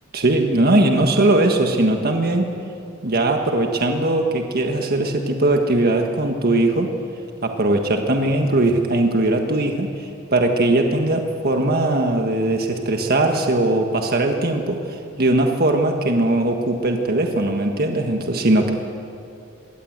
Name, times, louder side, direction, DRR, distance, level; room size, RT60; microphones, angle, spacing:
voice 1, 0.1-2.5 3.0-6.9 7.4-18.7, right 2 dB, 50° right, 3 dB, 1.6 m, -20 dB
22.0 x 17.0 x 8.0 m, 2.5 s
head